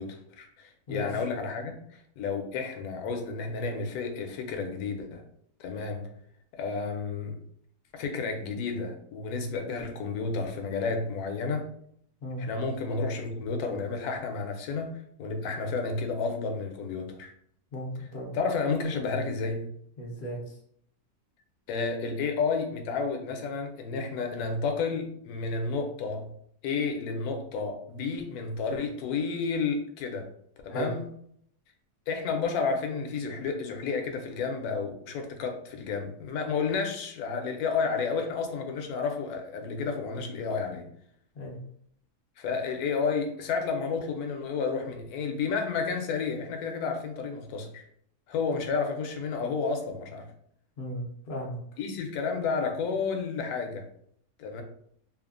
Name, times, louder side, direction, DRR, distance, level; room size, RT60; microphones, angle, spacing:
voice 1, 0.0-5.2 5.6-6.1 6.5-7.4 7.9-11.7 12.4-14.9 15.2-17.3 18.0-18.1 18.3-19.7 21.7-26.3 26.6-30.3 30.6-31.1 32.1-40.9 42.4-47.8 48.3-50.3 51.8-53.8 54.4-54.6, left 4 dB, 75° left, 4 dB, 1.0 m, -31 dB
voice 2, 17.7-18.3 20.0-20.4 30.7-30.9 41.4-41.6 50.8-51.6, equal, 55° left, -1 dB, 0.5 m, -35 dB
3.1 x 2.1 x 2.4 m, 0.68 s
omnidirectional pair, 1.7 m